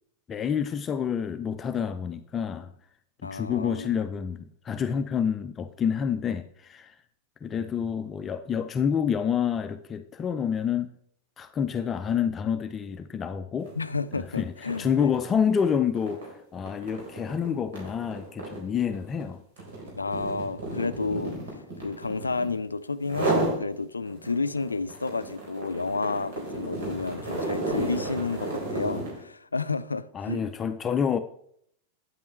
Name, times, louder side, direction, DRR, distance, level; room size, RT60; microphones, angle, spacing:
voice 1, 0.3-2.7 3.2-6.9 7.4-10.9 11.4-13.7 14.2-16.2 16.5-19.4 30.1-31.2, left 7 dB, 25° left, 0.5 m, -28 dB
voice 2, 3.2-3.9 13.8-15.2 20.0-21.4 21.8-30.5, left 4 dB, 80° left, 0.4 m, -31 dB
sound 1, 13.6-13.8 14.1-22.6 23.0-23.6 24.1-29.2, right 2 dB, 60° right, 3.7 m, -32 dB
9.3 x 8.5 x 3.2 m
figure-of-eight pair, 90°, 0 cm